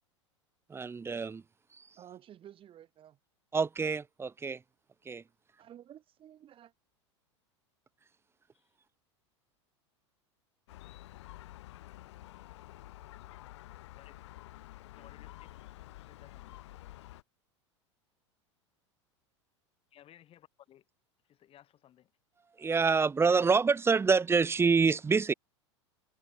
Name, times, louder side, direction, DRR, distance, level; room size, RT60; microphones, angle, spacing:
voice 1, 0.7-1.4 3.5-4.6 5.1-5.2 22.6-25.3, right 5 dB, 15° right, 0.9 m, -26 dB
voice 2, 2.0-3.2 5.6-6.7, right 11 dB, 35° right, 4.8 m, -52 dB
Gull seagull, 10.7-17.2, left 16 dB, 65° left, 1.1 m, -50 dB
voice 3, 15.0-15.6 15.9-16.6 19.9-20.8 21.3-22.1, left 11 dB, 35° left, 6.9 m, -59 dB
hypercardioid pair, 85°, 16 cm